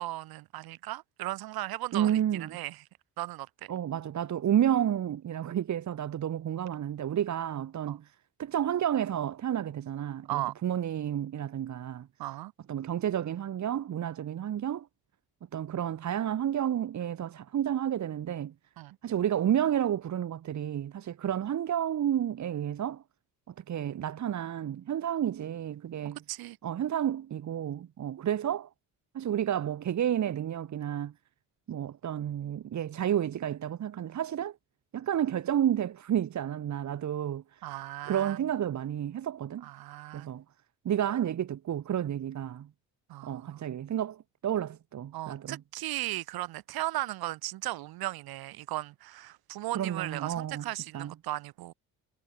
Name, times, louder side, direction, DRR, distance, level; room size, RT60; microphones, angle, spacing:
voice 1, 0.0-2.8 3.2-3.7 7.9-8.0 10.3-10.5 12.2-12.5 18.8-19.0 26.3-26.6 37.6-38.4 39.6-40.3 43.1-43.6 45.1-51.7, right 16 dB, 80° right, 7.5 m, -36 dB
voice 2, 1.9-2.6 3.7-8.0 8.4-12.1 12.7-14.9 15.5-18.5 19.0-23.0 23.5-26.2 26.6-28.7 29.1-31.1 31.7-34.6 34.9-37.4 38.0-39.7 40.1-40.4 40.9-42.7 43.2-45.6 49.7-50.6 50.9-51.1, right 10 dB, 50° right, 3.7 m, -31 dB
cardioid pair, 125°, 36 cm